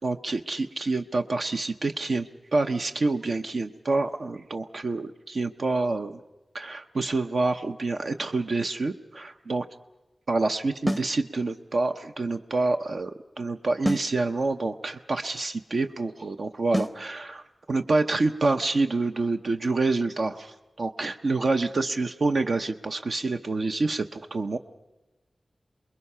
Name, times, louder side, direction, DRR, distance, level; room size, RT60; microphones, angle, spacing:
voice 1, 0.0-6.2 6.5-9.7 10.3-17.4 17.7-24.6, right 3 dB, 65° right, 6 dB, 0.8 m, -27 dB
sound 1, 10.9-11.2 13.8-14.2 16.7-17.0, equal, ahead, 0.7 m, -27 dB
28.5 x 21.5 x 5.7 m, 1.1 s
wide cardioid pair, 100°, 0 cm